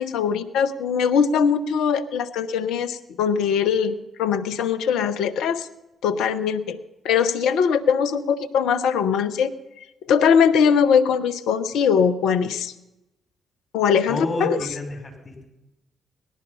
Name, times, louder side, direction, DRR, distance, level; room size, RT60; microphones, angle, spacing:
voice 1, 0.0-5.7 6.0-6.8 7.0-9.5 9.8-12.7 13.7-14.6, left 7 dB, 70° left, 11 dB, 0.8 m, -21 dB
voice 2, 14.1-15.4, left 2 dB, 30° left, 2 dB, 5.1 m, -29 dB
18.0 x 12.0 x 5.5 m, 0.96 s
hypercardioid pair, 45°, 0 cm